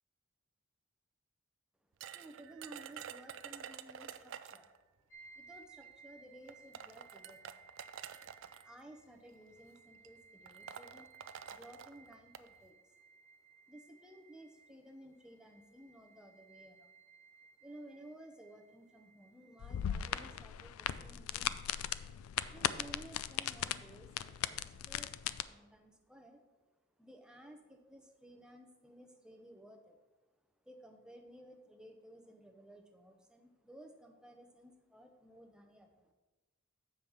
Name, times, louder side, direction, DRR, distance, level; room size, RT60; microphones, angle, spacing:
voice 1, 1.8-4.7 5.3-7.6 8.6-11.1 11.5-13.0 13.7-16.9 17.4-21.8 22.5-25.1 25.4-26.4 26.9-30.0 30.6-36.1, right 1 dB, 5° right, 3 dB, 0.6 m, -56 dB
sound 1, 2.0-4.8 5.8-5.9 6.5-8.6 9.5-9.8 10.0-10.1 10.5-12.5, right 8 dB, 55° right, 0.3 m, -49 dB
sound 2, 5.1-20.4, right 4 dB, 10° left, 1.4 m, -61 dB
sound 3, 19.6-25.4, left 10 dB, 75° left, 0.3 m, -38 dB
7.1 x 5.1 x 6.1 m, 1.2 s
head